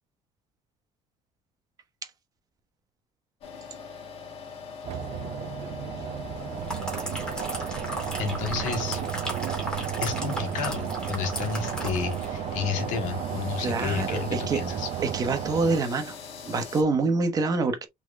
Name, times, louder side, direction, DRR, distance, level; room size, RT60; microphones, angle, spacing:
sound 1, 3.4-16.8, left 5 dB, 45° left, 1.6 m, -42 dB
sound 2, 4.8-15.8, right 11 dB, 45° right, 0.5 m, -33 dB
sound 3, 6.4-12.4 12.7-12.9, equal, 5° left, 2.2 m, -36 dB
voice 1, 8.2-9.0 10.0-14.9, left 7 dB, 75° left, 1.8 m, -31 dB
voice 2, 13.6-14.6 15.0-16.1 16.4-17.9, right 3 dB, 25° right, 1.0 m, -26 dB
5.8 x 4.0 x 2.2 m
cardioid pair, 175°, 13 cm